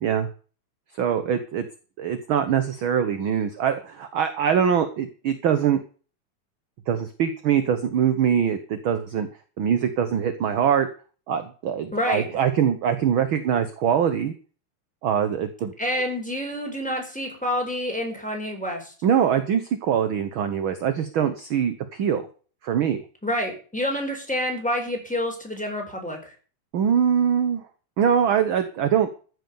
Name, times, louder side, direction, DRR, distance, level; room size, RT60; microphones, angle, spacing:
voice 1, 1.0-1.6 2.0-5.8 6.9-9.3 9.6-10.9 11.3-14.3 15.0-15.7 19.0-22.2 22.6-23.0 26.7-27.6 28.0-29.1, right 8 dB, 60° right, 10 dB, 1.4 m, -23 dB
voice 2, 11.9-12.4 15.8-18.9 23.2-26.3, left 1 dB, ahead, 2 dB, 4.5 m, -28 dB
14.5 x 8.0 x 7.0 m, 0.39 s
omnidirectional pair, 3.4 m